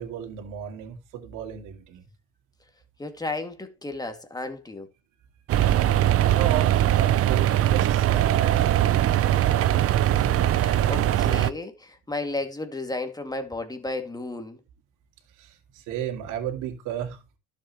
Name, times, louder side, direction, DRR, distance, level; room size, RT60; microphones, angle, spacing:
voice 1, 0.0-2.0 6.3-8.9 15.4-17.4, right 10 dB, 65° right, 2.3 m, -34 dB
voice 2, 3.0-4.9 10.1-14.6, left 2 dB, 10° left, 2.2 m, -33 dB
sound 1, 5.5-11.5, right 12 dB, 45° right, 0.7 m, -21 dB
11.5 x 7.4 x 3.0 m
supercardioid pair, 80°, 33 cm